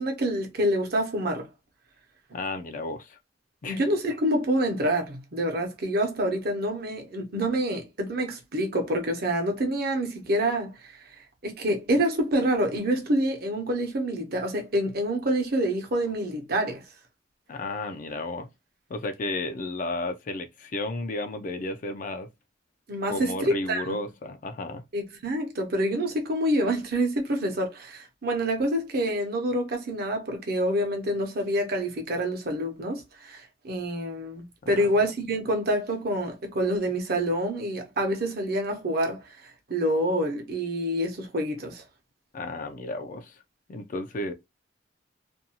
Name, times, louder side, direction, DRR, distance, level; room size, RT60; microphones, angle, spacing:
voice 1, 0.0-1.5 3.7-11.0 11.4-16.8 22.9-24.0 24.9-41.8, right 1 dB, 55° right, 0.8 m, -27 dB
voice 2, 2.3-3.2 3.6-3.8 17.5-18.5 18.9-22.3 23.1-24.8 34.6-34.9 42.3-43.4 43.7-44.3, left 2 dB, 45° left, 0.4 m, -33 dB
2.6 x 2.3 x 2.7 m
head